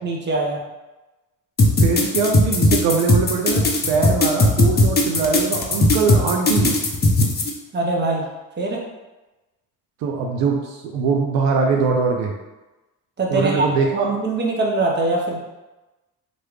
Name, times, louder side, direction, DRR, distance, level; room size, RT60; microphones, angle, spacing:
voice 1, 0.0-0.6 7.7-8.2 8.6-8.8 13.2-13.6 13.9-15.4, right 2 dB, 25° right, -1 dB, 0.8 m, -22 dB
sound 1, 1.6-7.5, left 2 dB, 20° left, 0.6 m, -17 dB
voice 2, 1.8-6.8 10.0-12.3 13.3-14.1, right 5 dB, 70° right, 1 dB, 0.6 m, -22 dB
3.0 x 2.5 x 3.2 m, 1.1 s
hypercardioid pair, 55°, 46 cm